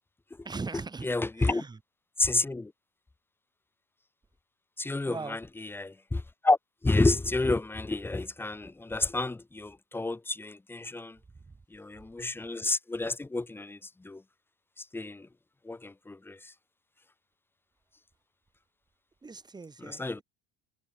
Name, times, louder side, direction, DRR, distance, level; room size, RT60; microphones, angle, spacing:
voice 1, 0.4-1.1 1.4-1.8 5.0-5.4 11.5-11.6 19.2-20.2, right 4 dB, 15° right, 6.0 m, -40 dB
voice 2, 1.0-1.6 2.2-2.7 4.8-6.6 6.8-11.2 11.7-14.2 14.8-15.3 15.6-16.5 19.8-20.2, left 2 dB, 5° left, 1.1 m, -30 dB
cardioid pair, 165°, 31 cm